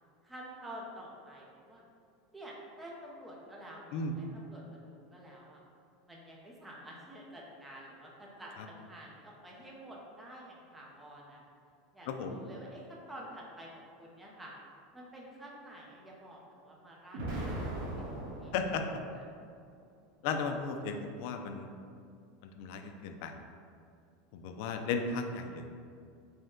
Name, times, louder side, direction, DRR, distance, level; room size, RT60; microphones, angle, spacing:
voice 1, 0.2-1.8 2.3-5.6 6.1-11.4 11.9-14.5 14.9-18.5 19.1-19.3, right 1 dB, 5° right, -3 dB, 0.5 m, -49 dB
voice 2, 12.1-12.4 18.5-18.8 20.2-21.7 22.6-23.3 24.3-25.6, left 5 dB, 55° left, 6 dB, 0.3 m, -35 dB
Explosion, 17.1-19.3, right 1 dB, 60° right, 1.0 m, -39 dB
5.2 x 2.1 x 3.6 m, 2.4 s
supercardioid pair, 170°, 0 cm